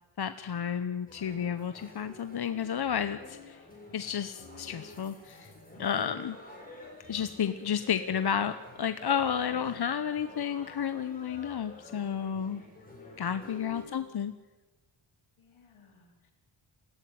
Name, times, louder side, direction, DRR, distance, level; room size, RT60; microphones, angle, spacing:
voice 1, 0.2-3.6 3.9-5.5 5.8-6.4 7.1-12.6 13.2-14.3, left 8 dB, 50° left, 10 dB, 1.0 m, -31 dB
sound 1, 1.1-13.8, left 2 dB, 15° left, 7.5 m, -49 dB
voice 2, 13.3-14.3 15.4-16.3, left 5 dB, 75° left, 2 dB, 4.4 m, -61 dB
21.5 x 16.0 x 9.5 m, 1.2 s
wide cardioid pair, 100°, 49 cm